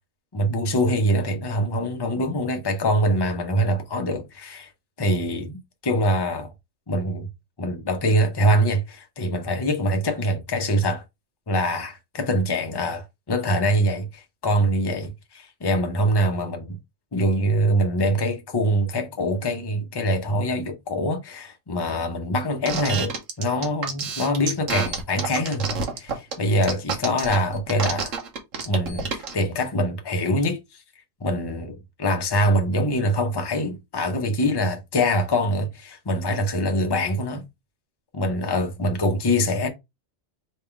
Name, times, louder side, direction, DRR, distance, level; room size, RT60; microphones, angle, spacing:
voice 1, 0.3-4.7 5.0-6.5 6.9-7.3 7.6-11.0 11.5-16.8 17.1-23.1 23.4-28.1 28.7-30.8 31.2-37.4 38.1-39.7, equal, 25° left, 0.7 m, -24 dB
sound 1, 22.7-29.3, right 5 dB, 80° right, 1.4 m, -28 dB
3.5 x 3.2 x 4.5 m
omnidirectional pair, 1.3 m